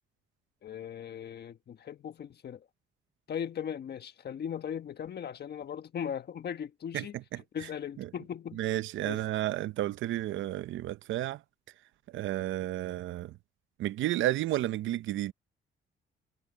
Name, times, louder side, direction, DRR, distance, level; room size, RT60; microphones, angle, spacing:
voice 1, 0.6-2.6 3.3-8.6 9.0-9.3, left 8 dB, 55° left, 1.4 m, -38 dB
voice 2, 8.6-11.4 12.1-13.3 13.8-15.3, right 14 dB, 75° right, 0.7 m, -31 dB
cardioid pair, 90°, 20 cm